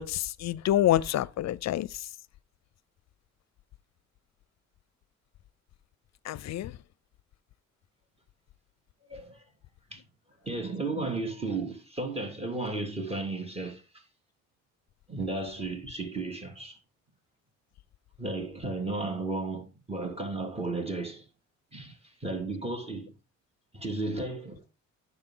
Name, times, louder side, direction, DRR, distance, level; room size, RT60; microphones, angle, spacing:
voice 1, 0.0-2.0 6.3-6.7, left 12 dB, 60° left, 0.5 m, -27 dB
voice 2, 10.4-13.8 15.1-16.8 18.2-21.2 21.7-23.1 23.7-24.6, right 2 dB, 20° right, 2.7 m, -34 dB
8.9 x 6.4 x 3.8 m
cardioid pair, 90°, 30 cm